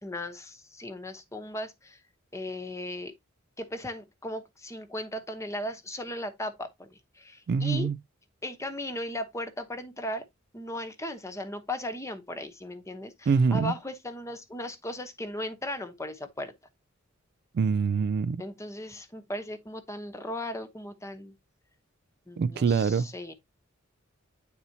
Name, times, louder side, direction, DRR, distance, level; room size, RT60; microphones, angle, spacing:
voice 1, 0.0-2.0 2.3-3.1 3.6-7.9 8.4-10.3 10.5-16.5 18.4-21.3 22.3-23.3, left 1 dB, 15° left, 0.9 m, -37 dB
voice 2, 7.5-8.0 13.3-13.7 17.5-18.4 22.4-23.1, right 5 dB, 55° right, 0.3 m, -25 dB
9.4 x 4.1 x 2.7 m
head